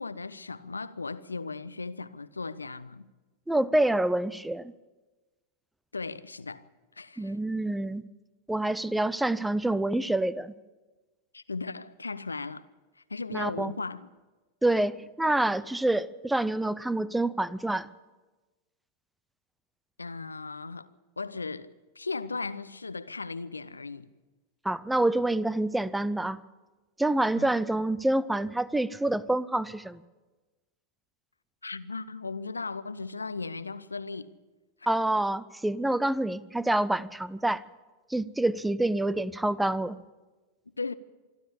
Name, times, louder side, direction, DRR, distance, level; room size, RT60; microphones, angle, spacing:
voice 1, 0.0-3.1 5.9-6.6 7.0-7.4 11.3-12.7 13.1-14.1 20.0-20.9 21.2-24.1 27.4-27.5 31.6-34.4 40.8-40.9, left 4 dB, 80° left, 0.7 m, -37 dB
voice 2, 3.5-4.7 7.2-8.0 8.5-10.5 13.3-13.7 14.6-17.9 24.6-26.4 27.0-30.0 34.9-37.6 38.1-40.0, right 1 dB, 5° right, 0.6 m, -27 dB
26.0 x 12.0 x 8.5 m
figure-of-eight pair, 90°, 0 cm